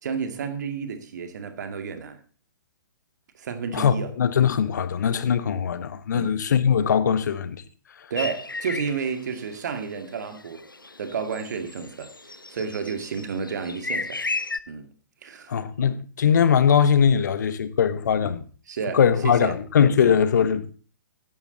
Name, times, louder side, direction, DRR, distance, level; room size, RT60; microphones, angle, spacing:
voice 1, 0.0-2.2 3.3-4.1 6.1-6.4 8.1-10.6 11.0-14.2 14.7-14.9 15.2-15.9 18.7-19.0 19.2-19.5 20.0-20.1, right 6 dB, 55° right, 2.2 m, -31 dB
voice 2, 3.7-7.6 8.0-8.1 15.5-18.5 18.9-20.7, left 7 dB, 60° left, 1.3 m, -21 dB
sound 1, 8.2-14.6, left 3 dB, 90° left, 0.7 m, -35 dB
14.5 x 10.5 x 4.0 m
figure-of-eight pair, 120°, 11 cm